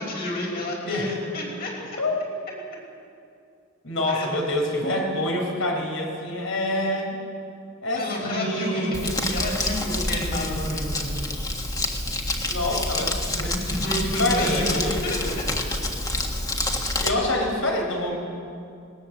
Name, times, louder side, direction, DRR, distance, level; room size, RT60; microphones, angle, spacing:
voice 1, 0.0-2.0 4.1-4.3 7.9-11.2 13.5-15.2, left 1 dB, 50° left, -2 dB, 5.8 m, -30 dB
voice 2, 3.8-7.2 7.8-8.9 12.4-15.0 17.0-18.2, left 1 dB, 80° left, 1 dB, 4.6 m, -26 dB
Crumpling crinkling, 8.9-17.1, left 1 dB, 20° left, 1.6 m, -28 dB
19.5 x 18.5 x 7.7 m, 2.5 s
head